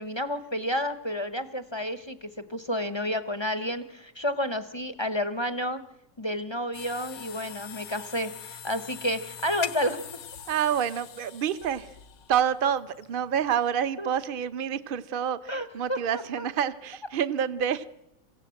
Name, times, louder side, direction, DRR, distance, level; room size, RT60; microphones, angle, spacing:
voice 1, 0.0-5.8 6.2-10.0 14.0-14.1 15.5-16.0 16.4-16.5, equal, 25° left, 11 dB, 0.6 m, -30 dB
sound 1, 6.7-13.5, left 9 dB, 85° left, 1.8 m, -42 dB
voice 2, 10.5-11.9 12.3-17.9, right 8 dB, 40° right, 14 dB, 0.8 m, -28 dB
26.5 x 16.0 x 7.8 m, 0.89 s
omnidirectional pair, 1.9 m